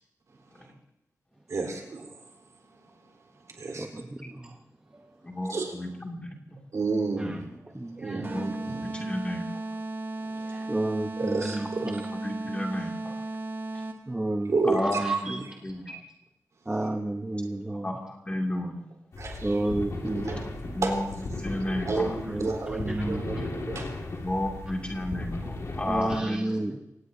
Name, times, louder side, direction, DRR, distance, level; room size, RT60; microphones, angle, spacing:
voice 1, 1.5-4.0 5.5-5.7 6.7-7.5 7.8-9.0 10.2-10.6 11.2-12.1 14.4-15.5 16.7-16.9 19.2-19.7 20.0-21.2 21.8-23.9, right 3 dB, 60° right, 1 dB, 3.8 m, -32 dB
voice 2, 3.8-4.4 7.8-8.2 10.5-12.0 14.1-14.5 15.0-15.4 16.7-17.9 19.4-20.5 22.3-22.5 22.8-23.5 25.9-26.8, right 2 dB, 15° right, 3 dB, 0.9 m, -31 dB
voice 3, 5.2-6.3 8.3-8.5 8.9-9.6 11.8-11.9 12.2-13.2 14.7-16.0 17.8-18.8 20.8-21.0 21.4-22.1 24.2-26.6, left 1 dB, 20° left, 0 dB, 2.4 m, -32 dB
sound 1, 8.2-14.2, right 2 dB, 40° right, 1.6 m, -35 dB
sound 2, 19.1-26.2, left 2 dB, 55° left, 2.1 m, -36 dB
25.5 x 18.0 x 2.7 m, 0.90 s
wide cardioid pair, 170°, 6 cm